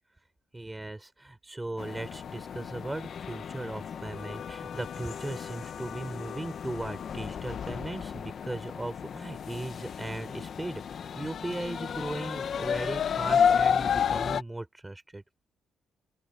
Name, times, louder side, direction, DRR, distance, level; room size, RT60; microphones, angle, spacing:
voice 1, 0.5-15.2, right 2 dB, 15° right, 5.6 m, -38 dB
sound 1, 1.8-14.4, left 7 dB, 55° left, 1.3 m, -32 dB
open air
cardioid pair, 90°, 0 cm